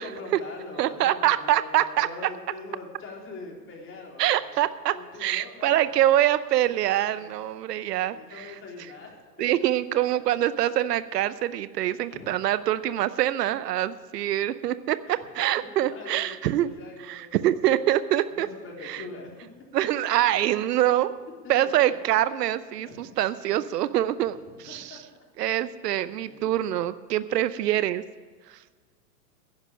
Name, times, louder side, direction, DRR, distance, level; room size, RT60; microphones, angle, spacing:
voice 1, 0.0-4.6 4.9-6.2 8.1-9.1 12.1-12.3 15.1-15.2 15.6-17.7 18.3-19.5 21.4-21.5 22.8-23.0 24.4-25.7 26.1-26.8, left 3 dB, 25° left, -1 dB, 3.7 m, -43 dB
voice 2, 0.8-2.1 4.2-8.5 9.4-16.7 17.0-18.5 18.8-19.0 19.7-21.1 21.5-25.0 25.4-28.0 28.5-28.6, right 13 dB, 70° right, 15 dB, 0.8 m, -25 dB
10.5 x 10.5 x 7.6 m, 1.5 s
hypercardioid pair, 115°, 49 cm